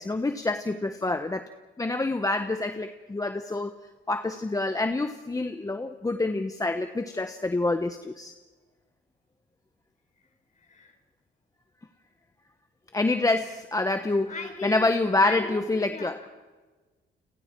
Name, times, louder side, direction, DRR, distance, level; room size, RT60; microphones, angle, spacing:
voice 1, 0.0-1.4 1.8-3.7 4.1-8.3 12.9-14.3 14.6-16.2, left 2 dB, 15° left, 7 dB, 1.1 m, -27 dB
voice 2, 10.6-11.0 14.3-14.9 15.2-15.6 15.9-16.3, left 4 dB, 40° left, 5 dB, 4.9 m, -37 dB
30.0 x 27.0 x 4.6 m, 1.3 s
cardioid pair, 90°, 20 cm